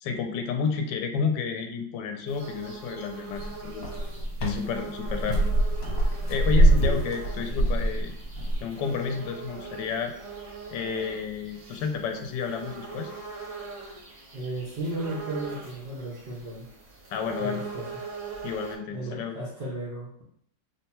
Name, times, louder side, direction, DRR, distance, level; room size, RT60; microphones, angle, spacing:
voice 1, 0.0-3.9 4.4-5.4 6.3-8.1 8.6-10.1 10.7-13.1 17.1-17.6 18.4-19.4, left 6 dB, 75° left, 5 dB, 1.2 m, -31 dB
sound 1, 2.3-18.8, right 5 dB, 55° right, 0.9 m, -42 dB
sound 2, 3.3-8.6, right 1 dB, 55° left, 1.2 m, -24 dB
voice 2, 14.3-16.7 17.4-17.9 18.9-20.2, right 1 dB, 70° right, -7 dB, 0.5 m, -34 dB
3.2 x 2.2 x 4.2 m, 0.69 s
omnidirectional pair, 2.1 m